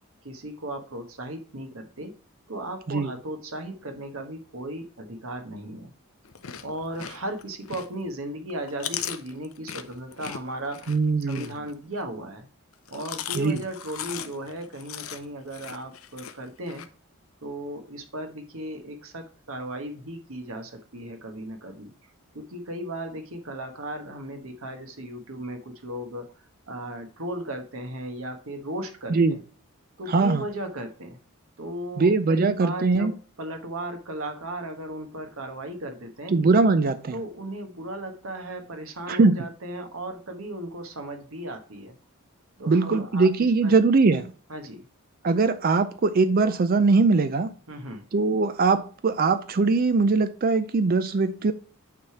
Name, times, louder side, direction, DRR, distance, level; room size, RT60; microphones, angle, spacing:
voice 1, 0.2-2.1 2.5-5.9 6.6-11.0 11.3-12.5 12.9-16.8 17.4-21.9 22.3-26.3 26.7-29.4 30.0-31.2 31.6-36.3 37.1-41.9 42.6-43.3 43.6-43.7 44.5-44.8 47.7-48.0, right 1 dB, 70° right, 1.2 m, -36 dB
Chewing mastication, 6.2-8.1 8.5-12.0 12.7-16.9, left 9 dB, 70° left, 0.7 m, -38 dB
voice 2, 10.9-11.5 13.3-13.6 29.1-29.4 30.1-30.4 32.0-33.1 36.3-37.2 39.1-39.5 42.7-44.3 45.2-47.5 48.1-51.5, right 3 dB, 40° right, 0.4 m, -21 dB
8.9 x 3.3 x 5.7 m
head